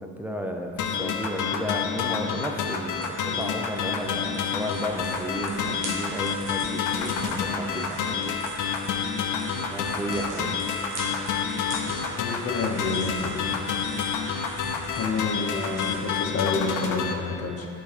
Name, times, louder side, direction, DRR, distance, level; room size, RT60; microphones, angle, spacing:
voice 1, 0.0-8.3 9.5-10.7, equal, 5° right, 2 dB, 0.6 m, -33 dB
sound 1, 0.8-17.1, left 6 dB, 80° left, 0.6 m, -29 dB
sound 2, 2.3-16.2, right 1 dB, 80° right, 1.4 m, -40 dB
voice 2, 12.2-13.6 15.0-17.7, left 4 dB, 55° left, 2 dB, 0.9 m, -29 dB
7.5 x 4.1 x 4.2 m, 2.6 s
cardioid pair, 90°, 30 cm